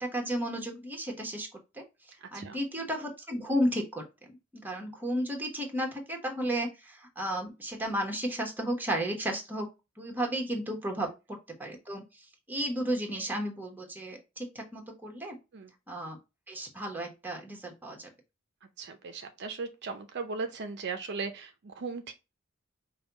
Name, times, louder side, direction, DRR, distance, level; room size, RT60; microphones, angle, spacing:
voice 1, 0.0-1.5 1.7-4.1 4.5-9.7 10.0-15.4 15.9-16.2 16.5-18.1, equal, 10° right, 1.2 m, -33 dB
voice 2, 18.8-22.1, right 4 dB, 55° right, 0.5 m, -37 dB
5.3 x 2.3 x 4.0 m
head